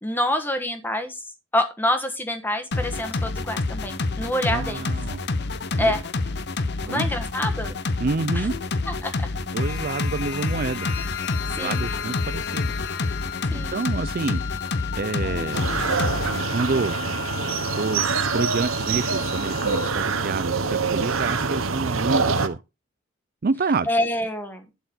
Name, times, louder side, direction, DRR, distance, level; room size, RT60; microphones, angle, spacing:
voice 1, 0.0-4.9 5.8-6.0 6.9-7.8 8.3-8.5 8.9-9.3 11.5-11.9 13.5-13.8 15.2-15.4 23.9-24.6, left 1 dB, 10° left, 1.4 m, -27 dB
sound 1, 2.7-16.4, left 3 dB, 50° left, 0.8 m, -28 dB
voice 2, 4.5-5.2 5.8-5.9 6.8-7.1 8.0-8.5 9.5-10.9 11.5-12.8 13.4-14.4 15.0-15.7 16.5-17.0 17.8-22.6 23.4-23.9, right 4 dB, 45° right, 0.4 m, -28 dB
Wind instrument woodwind instrument, 10.8-20.0, left 12 dB, 70° left, 2.4 m, -36 dB
sound 2, 15.5-22.5, right 4 dB, 75° right, 1.2 m, -25 dB
11.5 x 4.5 x 6.0 m
head